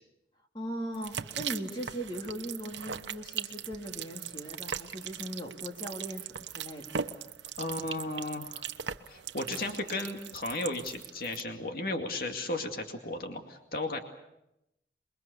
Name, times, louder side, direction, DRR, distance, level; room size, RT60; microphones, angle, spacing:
voice 1, 0.5-6.9, equal, 25° left, 2 dB, 2.8 m, -39 dB
sound 1, 0.9-11.4, right 8 dB, 90° right, 1.1 m, -40 dB
voice 2, 7.6-8.7 9.1-14.0, left 2 dB, 55° left, 4 dB, 2.3 m, -35 dB
27.5 x 22.5 x 6.9 m, 0.85 s
head